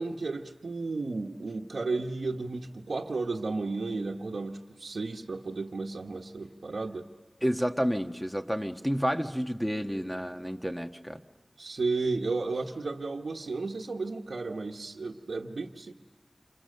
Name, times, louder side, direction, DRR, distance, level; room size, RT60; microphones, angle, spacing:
voice 1, 0.0-7.1 11.6-15.9, right 3 dB, 90° right, 0 dB, 1.1 m, -33 dB
voice 2, 7.4-11.2, equal, ahead, 6 dB, 1.5 m, -30 dB
29.0 x 27.0 x 6.7 m, 1.3 s
wide cardioid pair, 70°, 0 cm